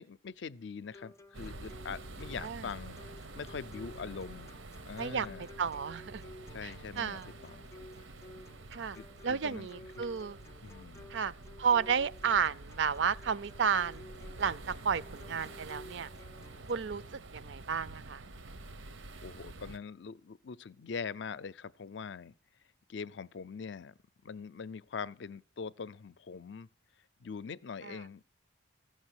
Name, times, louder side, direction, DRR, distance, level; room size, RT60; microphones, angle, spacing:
voice 1, 0.0-4.6 4.9-5.5 6.5-7.7 9.0-9.7 10.0-10.1 10.6-11.1 19.2-22.3 22.9-23.9 24.2-26.7 27.2-28.3, left 5 dB, 70° left, 0.5 m, -43 dB
sound 1, 0.9-16.9, left 2 dB, 15° left, 0.5 m, -54 dB
sound 2, 1.3-19.8, right 2 dB, 90° right, 1.0 m, -48 dB
voice 2, 5.6-6.2 6.6-7.3 8.7-9.0 9.2-10.4 11.1-11.3 11.6-14.0 14.4-16.1 16.7-18.2 27.8-28.0, right 6 dB, 70° right, 0.5 m, -32 dB
14.5 x 6.5 x 8.0 m
head